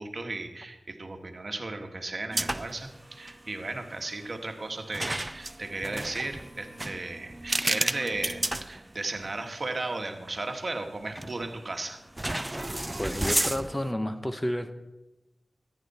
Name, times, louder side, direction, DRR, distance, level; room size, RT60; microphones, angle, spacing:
voice 1, 0.0-12.0, right 2 dB, 50° right, 5 dB, 1.6 m, -35 dB
sound 1, 2.3-2.9 3.1-3.4 4.9-9.3 9.8-9.9 11.1-11.6 12.2-13.9, right 1 dB, 20° right, 0.4 m, -32 dB
voice 2, 13.0-14.7, left 1 dB, 15° left, 8 dB, 1.0 m, -30 dB
14.0 x 10.0 x 4.3 m, 1.0 s
cardioid pair, 50°, 0 cm